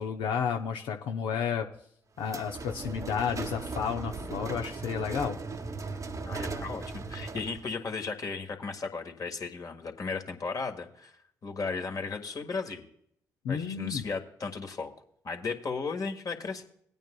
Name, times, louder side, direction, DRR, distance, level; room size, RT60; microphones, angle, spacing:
voice 1, 0.0-1.7 2.2-5.4 13.4-14.0, left 7 dB, 70° left, 3 dB, 0.7 m, -31 dB
sound 1, 2.2-7.7, right 3 dB, 40° right, 0.9 m, -38 dB
voice 2, 6.2-11.1 11.4-12.8 13.5-14.9 15.2-16.6, left 4 dB, 45° left, 4 dB, 1.7 m, -35 dB
19.0 x 9.1 x 2.3 m, 0.67 s
hypercardioid pair, 45°, 8 cm